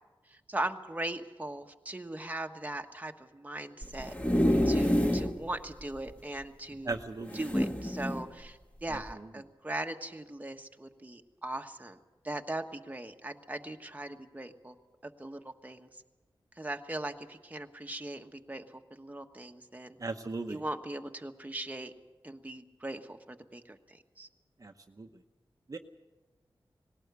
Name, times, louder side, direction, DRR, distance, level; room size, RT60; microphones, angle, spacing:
voice 1, 0.3-4.1 4.6-7.0 7.3-12.0 12.2-14.7 15.0-15.9 16.6-20.0 20.5-21.9 22.2-24.3, right 1 dB, 20° right, 5 dB, 1.3 m, -39 dB
sound 1, 3.8-5.3 5.8-5.9 6.1-6.2 7.3-8.2 8.9-9.1, equal, 15° left, 1.8 m, -27 dB
voice 2, 6.9-7.4 8.9-9.0 20.0-20.6 24.6-24.7 25.0-25.1 25.7-25.8, right 3 dB, 40° right, 5 dB, 1.0 m, -36 dB
19.5 x 17.5 x 8.2 m, 1.2 s
wide cardioid pair, 85°, 9 cm